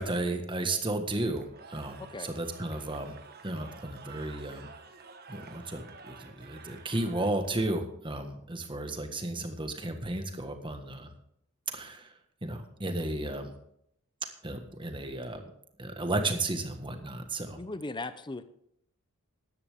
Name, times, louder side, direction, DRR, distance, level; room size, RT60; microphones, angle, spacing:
voice 1, 0.0-3.1 3.4-4.7 5.3-11.1 11.7-12.1 12.4-13.5 14.4-15.5 15.8-17.6, right 2 dB, 20° right, 6 dB, 1.5 m, -33 dB
Cheering / Crowd, 1.3-7.7, right 5 dB, 45° right, 1.3 m, -50 dB
voice 2, 2.0-2.3 17.6-18.4, left 2 dB, 20° left, 12 dB, 0.6 m, -38 dB
14.0 x 11.0 x 3.6 m, 0.73 s
head